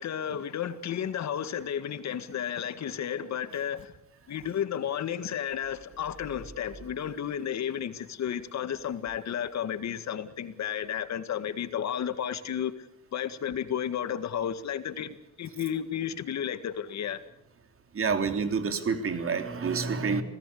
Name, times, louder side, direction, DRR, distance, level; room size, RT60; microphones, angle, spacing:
voice 1, 0.0-3.9 4.3-12.7 13.1-17.2, left 9 dB, 65° left, 1.9 m, -32 dB
voice 2, 17.9-20.2, right 5 dB, 45° right, 3.4 m, -28 dB
27.0 x 18.0 x 8.5 m
cardioid pair, 90°, 30 cm